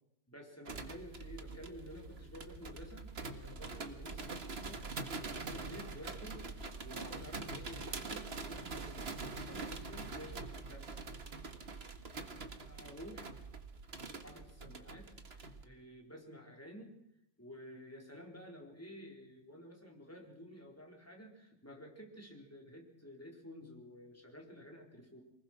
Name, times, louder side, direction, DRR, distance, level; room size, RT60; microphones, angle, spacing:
voice 1, 0.3-11.0 12.7-13.3 14.2-17.0 17.4-25.2, equal, 5° left, 0 dB, 4.2 m, -52 dB
sound 1, 0.6-15.6, right 3 dB, 35° right, 1.6 m, -44 dB
24.0 x 20.5 x 6.2 m, 0.81 s
omnidirectional pair, 2.0 m